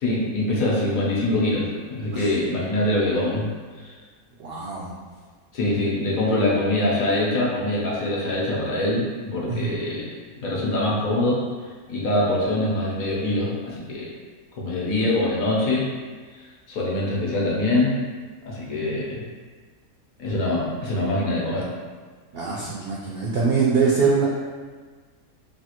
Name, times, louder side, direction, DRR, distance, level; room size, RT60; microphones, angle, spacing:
voice 1, 0.0-3.5 3.8-3.9 5.5-10.1 10.4-11.4 11.9-14.1 14.6-15.9 16.7-18.0 18.4-19.2 20.2-21.7, left 1 dB, 70° left, -5 dB, 1.1 m, -24 dB
voice 2, 4.4-4.9 9.5-9.7 22.3-24.2, right 5 dB, 80° right, -5 dB, 0.5 m, -23 dB
3.2 x 2.4 x 2.8 m, 1.5 s
omnidirectional pair, 1.5 m